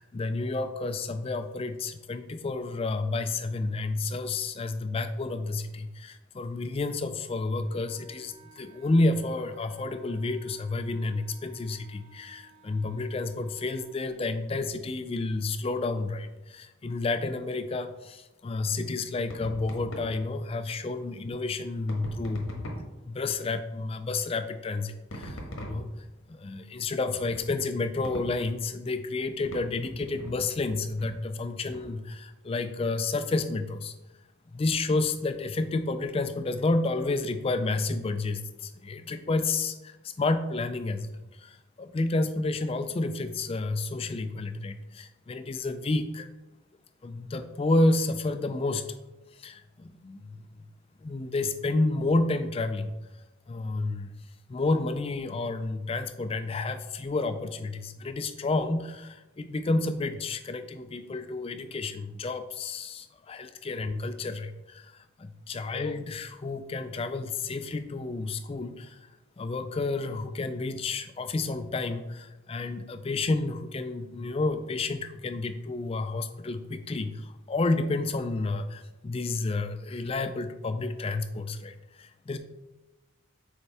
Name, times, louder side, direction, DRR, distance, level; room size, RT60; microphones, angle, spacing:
voice 1, 0.0-22.7 23.0-25.4 25.7-25.9 26.3-33.9 34.5-46.3 47.0-48.9 49.3-50.6 51.0-53.0 53.5-54.1 54.5-69.1 69.4-82.4, left 2 dB, 25° left, 9 dB, 0.3 m, -30 dB
Wind instrument woodwind instrument, 7.6-14.0, right 2 dB, 30° right, 0.8 m, -57 dB
sound 1, 19.3-20.2 21.9-23.0 25.1-26.2 27.1-27.5 28.0-28.4 29.4-30.7 31.0-31.2 31.7-31.9, equal, 70° left, 1.2 m, -41 dB
6.6 x 4.5 x 3.4 m, 1.1 s
head